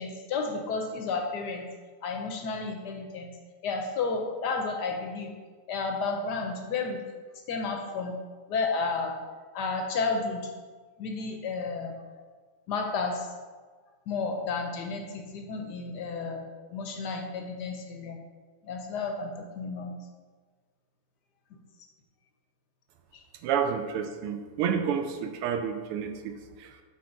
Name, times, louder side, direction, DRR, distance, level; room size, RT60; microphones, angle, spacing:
voice 1, 0.0-1.6 2.0-3.3 3.6-5.3 5.7-7.0 7.5-8.1 8.5-9.1 9.5-10.5 11.0-12.3 12.7-13.3 14.1-16.4 16.7-18.2 18.6-19.9 23.1-23.2, left 4 dB, 70° left, 3 dB, 1.0 m, -32 dB
voice 2, 23.4-26.8, right 7 dB, 90° right, 6 dB, 1.6 m, -30 dB
4.8 x 4.1 x 5.9 m, 1.5 s
omnidirectional pair, 2.4 m